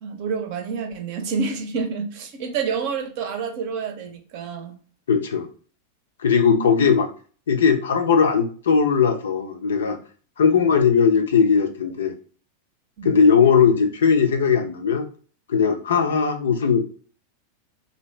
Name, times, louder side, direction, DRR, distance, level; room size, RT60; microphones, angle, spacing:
voice 1, 0.0-4.7 6.5-7.0 10.4-10.5 13.0-13.2, right 5 dB, 50° right, 5 dB, 0.6 m, -28 dB
voice 2, 5.1-5.5 6.2-7.1 7.5-10.0 10.4-12.1 13.0-15.1 15.5-16.8, left 6 dB, 65° left, 6 dB, 0.5 m, -18 dB
2.7 x 2.7 x 3.1 m, 0.41 s
figure-of-eight pair, 90°, 0 cm